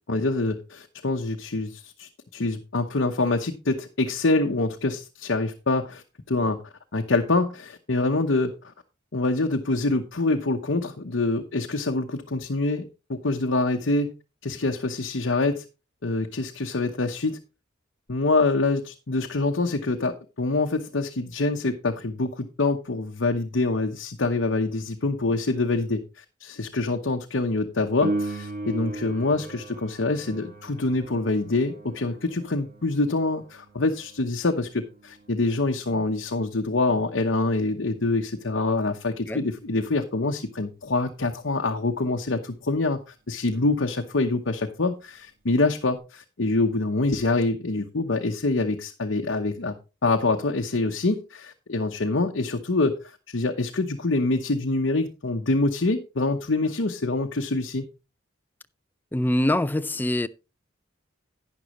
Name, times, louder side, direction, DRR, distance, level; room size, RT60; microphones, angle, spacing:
voice 1, 0.1-6.6 6.9-8.5 9.1-14.1 14.4-15.6 16.0-17.4 18.1-49.7 50.0-57.9, left 2 dB, 65° left, 1.0 m, -25 dB
Piano, 28.0-38.4 46.0-46.1, right 2 dB, 50° right, 1.9 m, -38 dB
voice 2, 59.1-60.3, left 1 dB, 10° left, 0.5 m, -24 dB
11.5 x 9.8 x 3.1 m
head